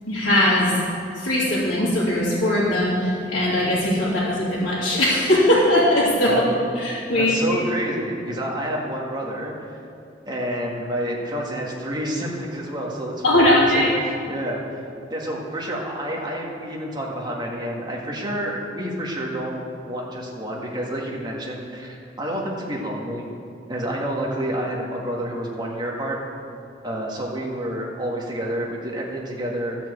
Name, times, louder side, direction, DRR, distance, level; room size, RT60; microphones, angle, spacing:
voice 1, 0.1-0.7 1.2-6.3 6.7-7.6 13.2-13.9, left 1 dB, 80° left, -10 dB, 2.9 m, -20 dB
voice 2, 7.2-9.5 10.3-13.9 14.3-14.6 15.1-19.6 19.8-23.3 23.7-26.2 26.8-29.8, right 1 dB, 25° right, -3 dB, 1.8 m, -29 dB
13.0 x 6.0 x 8.0 m, 2.5 s
head